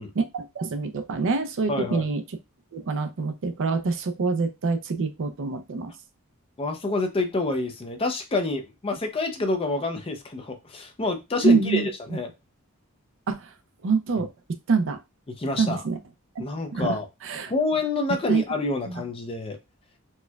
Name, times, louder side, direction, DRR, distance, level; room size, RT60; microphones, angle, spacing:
voice 1, 0.2-2.2 2.7-5.9 11.4-11.9 13.3-13.5 13.8-14.3 14.7-15.0 15.6-16.0 16.4-16.5 16.7-17.0 17.2-17.5 18.3-18.4 18.9-19.0, right 4 dB, 60° right, 0.5 m, -25 dB
voice 2, 1.7-2.0 6.6-12.3 15.4-15.8 16.4-17.1 17.5-19.6, left 3 dB, 25° left, 0.5 m, -27 dB
4.3 x 2.2 x 2.2 m
head